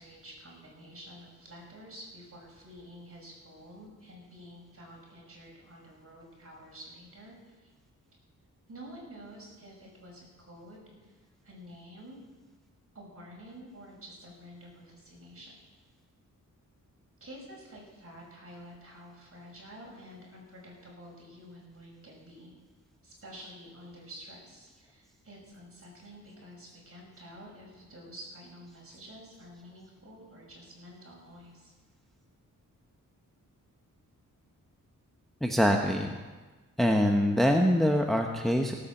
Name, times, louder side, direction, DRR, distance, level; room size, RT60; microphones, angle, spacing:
voice 1, 0.0-7.7 8.7-11.2 11.4-12.2 12.9-15.6 17.2-22.5 23.0-31.7, equal, 45° right, -2 dB, 6.1 m, -49 dB
voice 2, 35.4-36.1 36.8-38.7, equal, ahead, 3 dB, 1.0 m, -24 dB
16.5 x 8.6 x 7.1 m, 1.3 s
wide cardioid pair, 100°, 33 cm